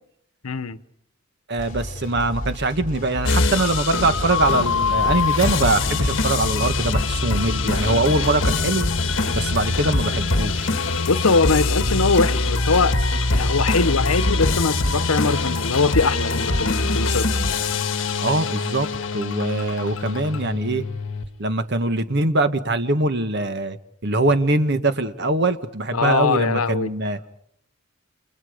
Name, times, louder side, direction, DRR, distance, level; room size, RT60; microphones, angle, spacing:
voice 1, 0.4-0.8 8.2-8.3 11.0-13.0 13.3-17.3 25.9-26.9, left 4 dB, 85° left, 1.0 m, -21 dB
voice 2, 1.5-8.9 9.4-10.7 18.2-18.9 19.1-20.8 21.4-23.8 24.0-27.2, right 2 dB, 50° right, 1.5 m, -22 dB
sound 1, 1.6-12.7, equal, 35° left, 4.2 m, -33 dB
sound 2, 3.2-21.2, left 3 dB, 60° left, 1.6 m, -23 dB
29.5 x 29.0 x 5.1 m
head